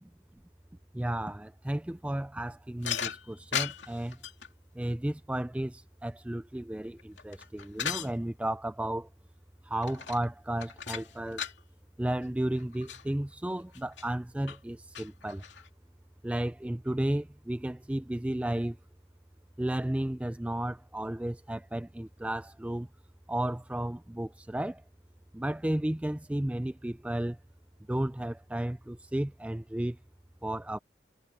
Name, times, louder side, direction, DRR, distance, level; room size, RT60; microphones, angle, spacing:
voice 1, 0.9-4.2 4.8-9.1 9.6-11.5 12.0-15.4 16.2-18.8 19.6-22.9 23.3-24.8 25.3-27.4 27.9-30.0 30.4-30.8, right 1 dB, 5° right, 0.3 m, -33 dB
sound 1, 2.8-4.5 6.8-8.1 9.8-10.3 10.6-11.6 12.2-12.3 12.6-13.0 13.7-14.1 14.5-14.6 15.0-15.7, left 8 dB, 90° left, 2.6 m, -36 dB
head